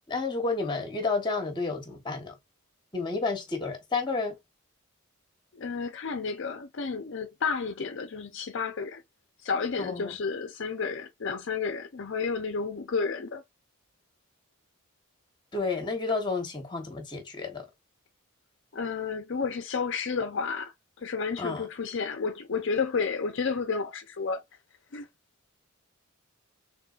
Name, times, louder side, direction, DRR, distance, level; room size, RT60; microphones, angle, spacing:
voice 1, 0.1-2.3 2.9-4.4 9.8-10.1 15.5-17.7 21.4-21.6, left 3 dB, 20° left, 1.1 m, -31 dB
voice 2, 5.5-9.0 9.4-13.4 18.7-24.4 24.9-25.1, left 5 dB, 55° left, 0.5 m, -31 dB
3.7 x 3.7 x 2.4 m
head